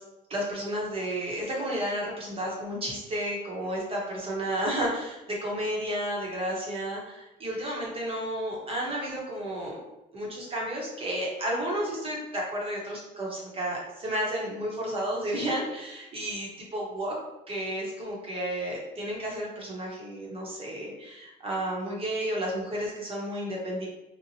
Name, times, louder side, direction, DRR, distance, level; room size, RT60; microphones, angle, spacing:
voice 1, 0.3-9.8 10.1-17.1 17.5-23.9, right 1 dB, 35° right, -3 dB, 0.8 m, -32 dB
2.8 x 2.0 x 2.7 m, 0.95 s
cardioid pair, 110°, 17 cm